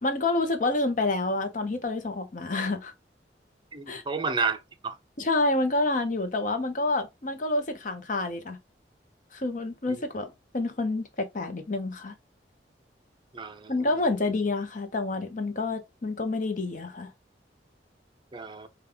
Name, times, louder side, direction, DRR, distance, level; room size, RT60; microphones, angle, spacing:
voice 1, 0.0-2.9 3.9-4.0 5.2-8.6 9.3-12.1 13.7-17.1, left 2 dB, 45° left, 0.8 m, -28 dB
voice 2, 3.7-4.9 13.3-13.7 18.3-18.7, right 4 dB, 25° right, 0.5 m, -31 dB
5.2 x 2.3 x 3.4 m
head